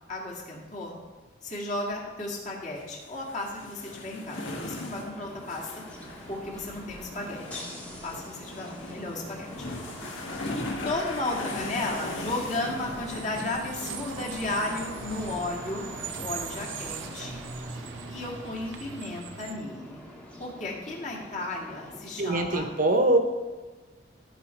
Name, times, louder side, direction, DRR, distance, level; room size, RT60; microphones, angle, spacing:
voice 1, 0.1-1.0 1.4-5.7 6.3-7.7 8.0-9.7 10.8-15.9 16.2-17.4 18.1-20.0 20.4-22.7, left 2 dB, 40° left, -3 dB, 2.0 m, -34 dB
sound 1, 2.7-13.6 13.9-16.3 16.6-16.7, left 2 dB, 85° left, 1.6 m, -39 dB
sound 2, 4.4-22.4, left 1 dB, 5° left, 1.1 m, -45 dB
sound 3, 6.0-19.5, right 5 dB, 75° right, 0.7 m, -42 dB
voice 2, 22.2-23.2, right 2 dB, 45° right, 5 dB, 1.0 m, -23 dB
14.5 x 5.0 x 4.5 m, 1.3 s
head